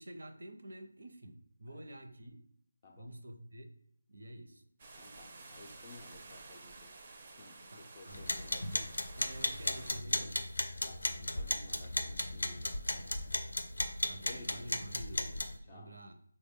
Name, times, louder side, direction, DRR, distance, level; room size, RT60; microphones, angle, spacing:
voice 1, 0.0-2.4 3.0-3.7 4.1-4.6 7.7-8.4 9.2-10.6 12.9-13.1 14.0-16.1, right 1 dB, 75° right, 6 dB, 0.6 m, -49 dB
voice 2, 2.8-3.1 5.0-7.0 7.4-8.9 10.8-13.4 14.3-14.7 15.7-16.0, left 3 dB, 30° left, 0 dB, 0.4 m, -56 dB
sound 1, 4.8-10.0, right 3 dB, 35° right, 0.4 m, -52 dB
sound 2, 8.1-15.6, left 2 dB, 85° left, 0.5 m, -36 dB
3.7 x 2.1 x 3.5 m, 0.68 s
figure-of-eight pair, 165°, 0 cm